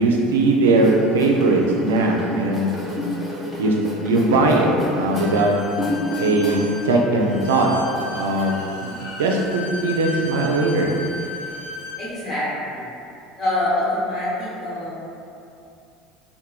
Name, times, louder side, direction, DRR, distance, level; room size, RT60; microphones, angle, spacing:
voice 1, 0.0-2.8 3.6-3.7 4.0-5.5 6.2-7.7 8.1-8.9 9.2-10.9, right 2 dB, 90° right, 0 dB, 0.3 m, -19 dB
sound 1, 0.6-6.8 7.1-8.4, left 1 dB, 10° left, 0.7 m, -30 dB
Bowed string instrument, 5.1-12.0, left 2 dB, 85° left, 0.5 m, -35 dB
voice 2, 12.0-12.8 13.4-15.1, left 1 dB, 40° left, -8 dB, 1.1 m, -25 dB
3.0 x 2.1 x 2.3 m, 2.6 s
hypercardioid pair, 90°, 0 cm